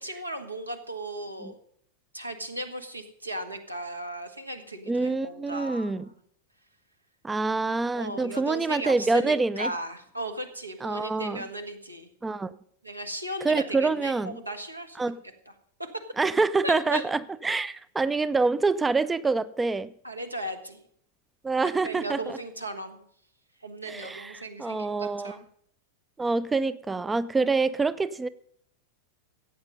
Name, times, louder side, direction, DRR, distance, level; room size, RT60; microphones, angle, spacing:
voice 1, 0.0-1.5 2.1-6.1 7.9-12.1 12.8-15.0 15.8-16.0 16.6-17.0 20.0-20.8 21.8-23.0 23.6-25.4, right 1 dB, 85° right, 1.5 m, -36 dB
voice 2, 4.9-6.0 7.2-9.7 10.8-11.4 12.2-12.5 13.4-14.4 15.0-15.2 16.2-19.9 21.4-22.4 23.9-25.4 26.2-28.3, right 3 dB, 10° right, 0.4 m, -26 dB
14.5 x 8.8 x 5.4 m
figure-of-eight pair, 90°, 0 cm